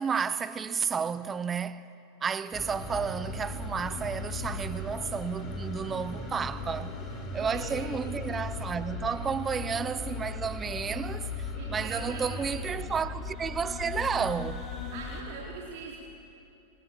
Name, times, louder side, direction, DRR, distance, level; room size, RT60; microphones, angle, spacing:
voice 1, 0.0-1.8 2.2-6.9 7.3-14.6, right 6 dB, 20° right, 0.8 m, -32 dB
sound 1, 2.5-15.2, left 3 dB, 30° left, 4.3 m, -37 dB
voice 2, 7.3-7.9 9.1-9.2 11.5-12.9 14.9-16.0, right 4 dB, 50° right, 3.8 m, -42 dB
27.5 x 26.0 x 7.3 m
figure-of-eight pair, 90°, 0 cm